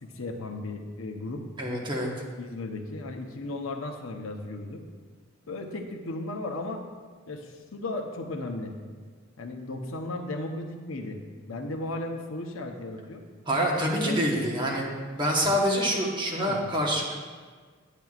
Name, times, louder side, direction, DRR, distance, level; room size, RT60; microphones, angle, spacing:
voice 1, 0.0-1.5 2.4-4.8 5.5-6.8 7.3-8.8 9.4-11.2 11.5-13.2 14.0-14.3 16.4-16.6, left 2 dB, 80° left, 4 dB, 0.7 m, -35 dB
voice 2, 1.6-2.1 13.5-14.9 15.2-17.1, equal, 20° right, -2 dB, 1.1 m, -26 dB
9.1 x 9.0 x 2.4 m, 1.5 s
head